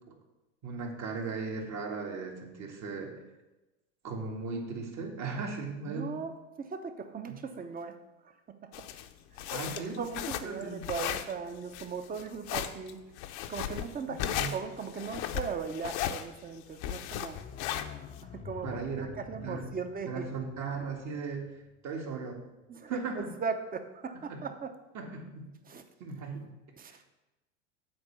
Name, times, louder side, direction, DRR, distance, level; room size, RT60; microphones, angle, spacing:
voice 1, 0.6-3.1 4.0-6.2 9.5-10.0 10.5-10.8 14.2-14.5 18.6-19.1 19.4-19.6 20.1-21.5 21.8-22.4 22.9-23.3 24.3-24.4 24.9-25.5 26.0-26.5 26.8-27.0, right 4 dB, 45° right, 1 dB, 2.1 m, -37 dB
voice 2, 5.8-8.0 8.2-8.9 9.3-13.0 13.5-17.4 18.2-18.8 19.1-20.3 22.7-24.7 25.7-25.8 26.8-27.0, right 5 dB, 25° right, 8 dB, 0.9 m, -38 dB
sound 1, 8.7-18.2, left 11 dB, 65° left, 0.8 m, -36 dB
sound 2, 17.3-22.0 22.3-22.4, left 8 dB, 20° left, 0.3 m, -48 dB
7.9 x 4.5 x 7.1 m, 1.0 s
hypercardioid pair, 90°, 38 cm